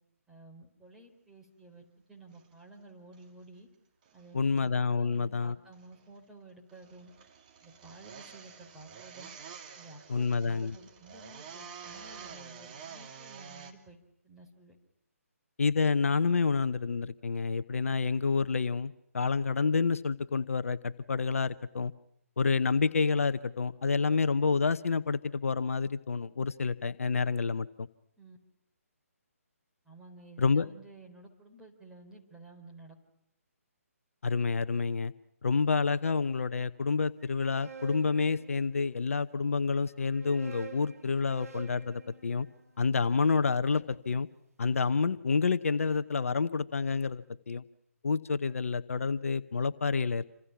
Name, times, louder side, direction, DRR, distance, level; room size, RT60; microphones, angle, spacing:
voice 1, 0.3-3.7 4.1-7.1 7.6-9.3 9.7-14.0 14.2-14.8 28.2-28.4 29.8-33.0, right 2 dB, 5° right, -2 dB, 4.1 m, -53 dB
sound 1, 2.3-2.5 3.1-3.3 4.0-4.8 5.6-6.2 6.7-13.7, right 6 dB, 35° right, 2.9 m, -49 dB
voice 2, 4.3-5.6 10.1-10.7 15.6-21.9 22.4-27.9 30.4-30.7 34.2-35.1 35.4-42.5 42.8-44.3 44.6-47.6 48.0-50.2, left 4 dB, 65° left, 13 dB, 0.9 m, -28 dB
sound 2, 37.2-39.1 39.9-44.0, right 6 dB, 80° right, 3.2 m, -49 dB
28.0 x 26.5 x 5.9 m, 0.77 s
figure-of-eight pair, 140°, 8 cm